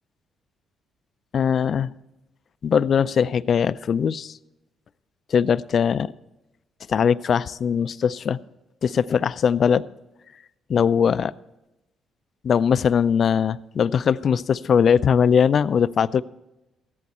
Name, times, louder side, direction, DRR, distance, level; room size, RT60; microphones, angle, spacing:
voice 1, 1.3-1.9 2.6-4.3 5.3-6.1 6.9-8.4 8.8-9.8 10.7-11.3 12.4-16.2, left 7 dB, 55° left, 16 dB, 0.4 m, -20 dB
14.0 x 11.0 x 4.3 m, 0.94 s
cardioid pair, 90°, 0 cm